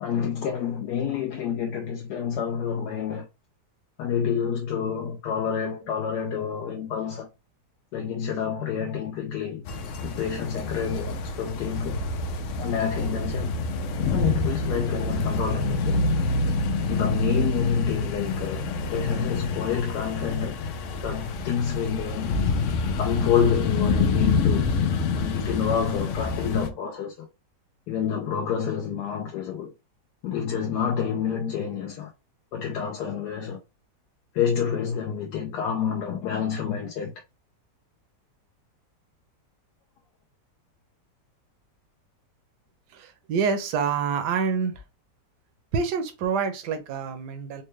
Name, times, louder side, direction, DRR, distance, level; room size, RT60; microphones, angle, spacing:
voice 1, 0.0-3.2 4.0-7.3 7.9-9.6 10.0-12.0 12.6-13.6 14.1-16.1 16.9-18.7 18.9-20.5 21.0-22.5 23.0-24.7 25.1-27.3 27.9-29.7 30.2-32.1 32.5-33.6 34.3-37.1, left 7 dB, 75° left, 1.1 m, -28 dB
sound 1, 9.7-26.7, left 3 dB, 90° left, 0.6 m, -27 dB
voice 2, 42.9-44.8 45.7-47.6, right 6 dB, 70° right, 1.3 m, -27 dB
4.2 x 2.2 x 3.1 m
omnidirectional pair, 1.9 m